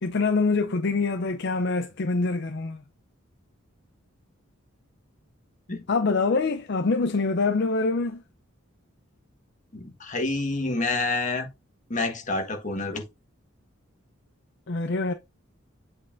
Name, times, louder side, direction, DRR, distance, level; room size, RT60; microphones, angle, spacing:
voice 1, 0.0-2.8 5.9-8.2 14.7-15.1, left 3 dB, 55° left, 0.5 m, -25 dB
voice 2, 9.7-11.5 11.9-13.0, left 2 dB, 35° left, 1.5 m, -28 dB
8.0 x 5.3 x 2.6 m
head